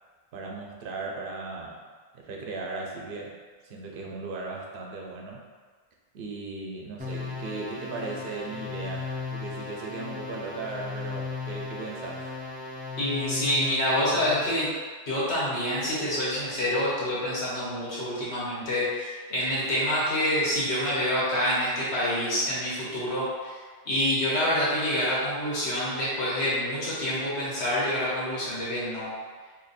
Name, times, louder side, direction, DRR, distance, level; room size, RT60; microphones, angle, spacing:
voice 1, 0.3-1.8 2.1-3.4 3.6-5.4 6.1-12.3, right 3 dB, 60° right, -1 dB, 0.7 m, -37 dB
sound 1, 7.0-14.6, left 4 dB, 15° right, 0.4 m, -36 dB
voice 2, 13.0-14.7 15.1-23.6 23.9-29.1, left 1 dB, 85° left, -8 dB, 1.3 m, -27 dB
2.7 x 2.5 x 3.9 m, 1.5 s
omnidirectional pair, 1.1 m